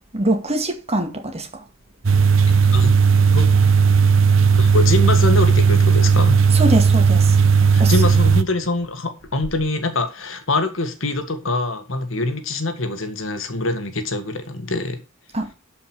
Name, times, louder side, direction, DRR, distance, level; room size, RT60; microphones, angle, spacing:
voice 1, 0.1-1.6 6.5-7.4 7.8-7.9 15.3-15.5, right 1 dB, 30° right, 2.2 m, -23 dB
sound 1, 2.0-8.4, right 5 dB, 75° right, 0.9 m, -15 dB
voice 2, 4.6-6.4 7.7-15.0, left 2 dB, 75° left, 1.9 m, -24 dB
12.0 x 5.4 x 6.1 m
head